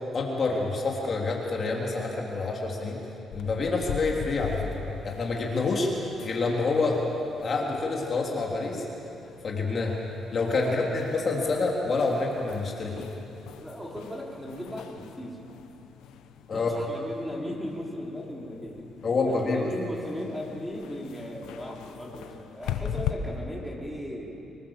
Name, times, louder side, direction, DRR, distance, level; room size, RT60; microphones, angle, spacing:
voice 1, 0.1-3.0 3.3-4.7 5.0-5.9 6.2-7.0 7.4-8.8 9.4-9.9 10.3-13.1 16.5-16.7 19.0-19.7, left 3 dB, 45° left, -1 dB, 3.4 m, -27 dB
sound 1, 3.3-23.1, left 9 dB, 90° left, 1.1 m, -41 dB
voice 2, 10.6-11.0 11.4-11.5 13.6-15.4 16.5-18.9 19.3-24.3, equal, 5° right, -2 dB, 4.8 m, -37 dB
25.0 x 20.5 x 7.4 m, 2.8 s
cardioid pair, 90°, 0 cm